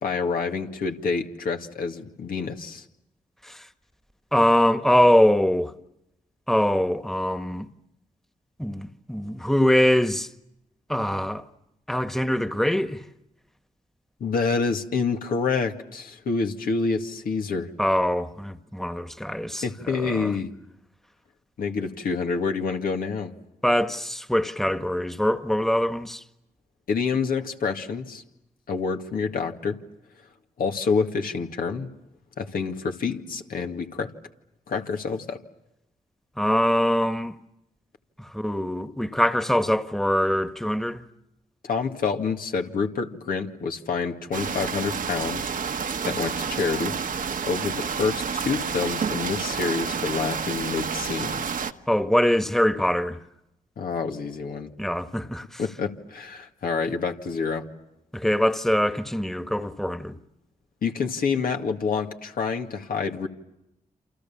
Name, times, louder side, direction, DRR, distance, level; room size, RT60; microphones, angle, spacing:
voice 1, 0.0-2.8 14.2-17.7 19.6-20.5 21.6-23.3 26.9-28.2 28.7-29.8 30.6-31.9 32.4-34.1 34.7-35.4 41.6-45.5 46.0-46.9 47.5-51.4 53.8-54.7 55.6-57.6 60.8-63.3, left 5 dB, 75° left, 2.2 m, -27 dB
voice 2, 4.3-5.7 6.5-7.7 8.6-10.3 10.9-11.4 11.9-13.0 17.8-20.3 23.6-26.2 36.4-37.3 38.2-41.0 51.9-53.2 54.8-55.6 58.1-60.2, equal, 5° left, 1.6 m, -23 dB
sound 1, 44.3-51.7, right 6 dB, 65° right, 1.4 m, -29 dB
28.5 x 27.5 x 7.3 m
supercardioid pair, 45°, 15 cm